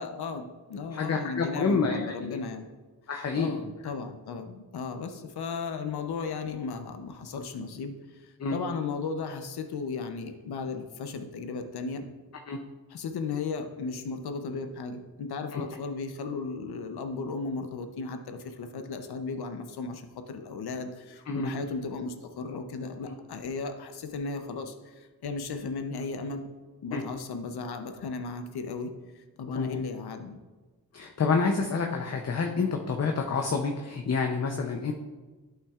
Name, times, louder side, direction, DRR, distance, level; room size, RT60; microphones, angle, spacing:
voice 1, 0.0-2.7 3.4-12.1 12.9-26.5 26.8-30.4, left 4 dB, 85° left, 7 dB, 0.7 m, -35 dB
voice 2, 0.9-2.4 3.1-3.6 8.4-8.6 12.5-12.6 15.5-15.7 21.3-21.5 26.9-27.0 29.5-29.8 30.9-34.9, left 4 dB, 45° left, 3 dB, 0.6 m, -28 dB
11.5 x 5.7 x 2.4 m, 1.3 s
wide cardioid pair, 95°, 38 cm